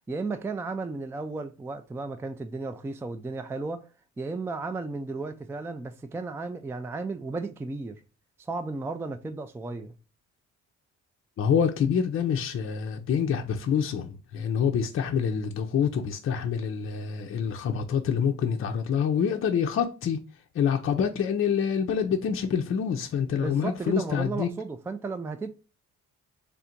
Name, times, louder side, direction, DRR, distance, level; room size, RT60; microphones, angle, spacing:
voice 1, 0.1-3.8 4.2-8.0 8.4-9.9 23.4-25.5, right 3 dB, 10° right, 0.3 m, -34 dB
voice 2, 11.4-20.2 20.5-24.5, left 7 dB, 45° left, 0.5 m, -26 dB
3.4 x 2.5 x 4.3 m
cardioid pair, 90°, 30 cm